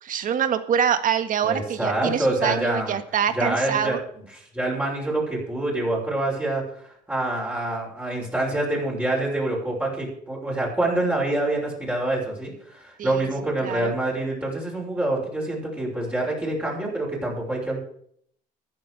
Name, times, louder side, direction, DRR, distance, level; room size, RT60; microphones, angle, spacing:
voice 1, 0.0-4.0 13.0-13.3 13.6-13.9, right 8 dB, 55° right, 9 dB, 1.6 m, -25 dB
voice 2, 1.4-3.0 3.3-4.0 4.3-6.6 7.1-17.8, right 2 dB, 10° right, -4 dB, 6.3 m, -26 dB
15.0 x 9.8 x 5.0 m, 0.65 s
cardioid pair, 110°, 17 cm